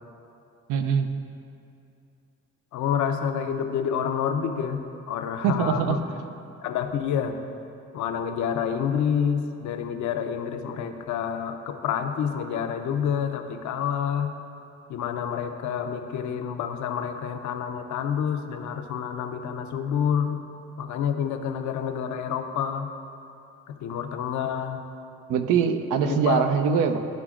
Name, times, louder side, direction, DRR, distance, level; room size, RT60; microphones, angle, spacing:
voice 1, 0.7-1.1 5.4-6.0 25.3-27.0, right 7 dB, 85° right, 8 dB, 0.5 m, -23 dB
voice 2, 2.7-4.8 5.1-6.0 6.6-7.4 7.9-14.3 14.9-20.4 20.8-22.9 23.7-24.8 26.0-26.4, left 8 dB, 70° left, 6 dB, 0.6 m, -28 dB
11.5 x 5.0 x 2.4 m, 2.6 s
cardioid pair, 90°, 30 cm